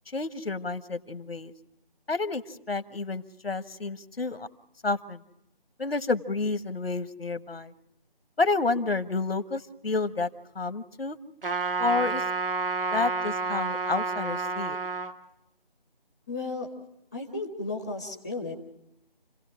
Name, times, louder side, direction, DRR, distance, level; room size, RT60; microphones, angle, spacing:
voice 1, 0.1-1.5 2.1-2.4 2.7-4.5 4.8-5.2 5.8-7.7 8.4-10.3 10.5-11.2 11.8-12.2 12.9-14.8, left 3 dB, 85° left, 12 dB, 1.3 m, -29 dB
Trumpet, 11.4-15.1, right 4 dB, 70° right, 1.8 m, -29 dB
voice 2, 16.3-16.7 17.1-18.5, left 3 dB, 5° left, -1 dB, 0.8 m, -34 dB
28.5 x 17.0 x 6.1 m, 0.86 s
figure-of-eight pair, 170°, 29 cm